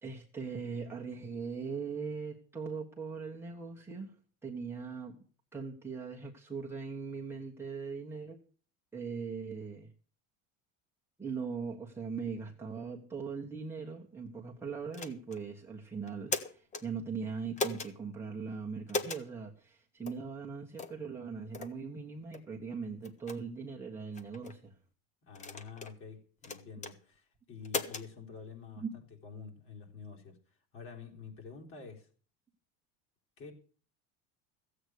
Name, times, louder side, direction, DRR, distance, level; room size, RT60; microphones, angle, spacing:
voice 1, 0.0-4.1 4.4-5.2 5.5-8.4 8.9-9.9 11.2-24.7 28.8-28.9, right 5 dB, 5° right, 1.3 m, -40 dB
sound 1, 14.9-15.4 16.1-16.8 17.6-17.9 18.9-19.2 20.1-20.2 20.8-21.0 21.5-21.7 22.3-22.4 23.0-23.4 24.1-24.5 25.3-25.9 26.4-26.9 27.6-28.1, left 4 dB, 20° left, 1.0 m, -37 dB
voice 2, 25.3-28.8 29.2-30.4 30.7-32.1 33.4-33.5, left 5 dB, 40° left, 4.0 m, -48 dB
15.0 x 8.2 x 6.4 m
cardioid pair, 165°, 33 cm